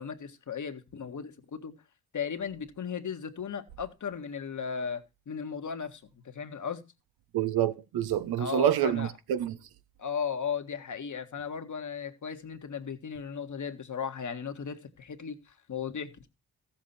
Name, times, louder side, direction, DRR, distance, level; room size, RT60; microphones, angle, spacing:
voice 1, 0.0-1.8 2.1-6.8 8.4-9.1 10.0-16.3, left 7 dB, 50° left, 1.8 m, -36 dB
voice 2, 7.3-9.6, right 11 dB, 75° right, 1.1 m, -27 dB
14.5 x 7.5 x 4.3 m
supercardioid pair, 50°, 37 cm